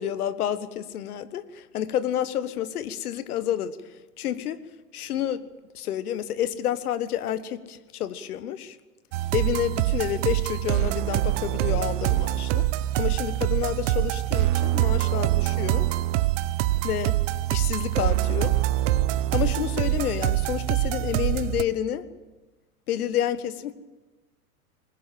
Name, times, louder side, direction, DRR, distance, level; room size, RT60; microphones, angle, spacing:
voice 1, 0.0-3.8 4.2-4.6 4.9-5.4 5.7-8.8 9.3-12.6 13.0-15.9 16.8-17.1 17.5-18.6 19.3-22.0 22.9-23.7, left 10 dB, 70° left, 14 dB, 1.5 m, -29 dB
sound 1, 9.1-21.6, right 15 dB, 50° right, 1.0 m, -24 dB
21.5 x 20.0 x 7.7 m, 1.2 s
hypercardioid pair, 100°, 46 cm